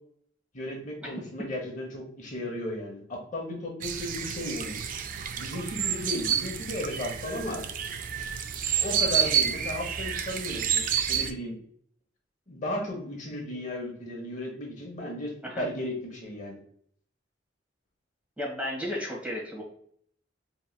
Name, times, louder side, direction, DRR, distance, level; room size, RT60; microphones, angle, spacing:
voice 1, 0.5-4.8 5.3-7.6 8.8-11.6 12.5-16.6, left 1 dB, 45° left, 0 dB, 0.8 m, -35 dB
sound 1, 3.8-11.3, right 8 dB, 45° right, 0.3 m, -29 dB
voice 2, 18.4-19.6, equal, 5° right, -4 dB, 1.4 m, -34 dB
4.6 x 2.9 x 2.3 m, 0.64 s
head